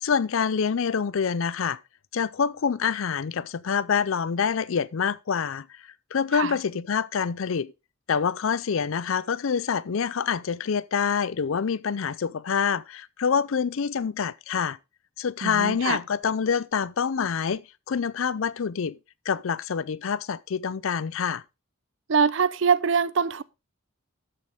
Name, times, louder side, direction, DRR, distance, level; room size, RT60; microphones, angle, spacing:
voice 1, 0.0-1.8 2.1-5.7 6.1-7.7 8.1-14.8 15.2-17.6 17.9-19.0 19.3-21.4, left 6 dB, 65° left, 0.5 m, -26 dB
voice 2, 15.4-16.0 22.1-23.4, right 6 dB, 55° right, 0.5 m, -23 dB
13.5 x 6.5 x 3.5 m
head